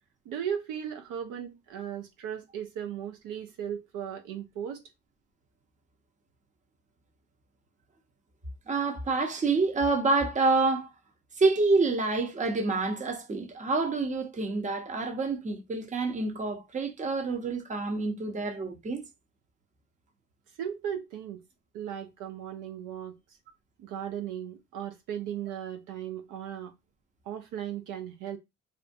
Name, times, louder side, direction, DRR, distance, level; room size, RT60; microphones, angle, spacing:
voice 1, 0.3-4.8 20.6-21.4 21.7-23.2 23.8-26.7 27.3-28.4, right 9 dB, 65° right, 0.5 m, -36 dB
voice 2, 8.7-10.9 11.4-19.0, right 3 dB, 20° right, 0.7 m, -27 dB
2.5 x 2.1 x 2.5 m
supercardioid pair, 70°, 33 cm